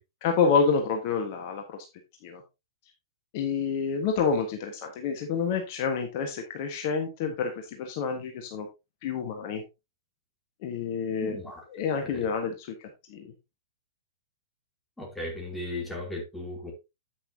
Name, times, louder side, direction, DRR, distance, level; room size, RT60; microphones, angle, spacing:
voice 1, 0.2-1.8 2.2-2.4 3.3-8.7 9.0-9.6 10.6-13.3, left 5 dB, 40° left, 4 dB, 1.5 m, -28 dB
voice 2, 11.2-12.3 15.0-16.7, left 2 dB, 5° left, 0 dB, 3.0 m, -37 dB
9.6 x 8.5 x 2.8 m, 0.25 s
figure-of-eight pair, 110°, 2 cm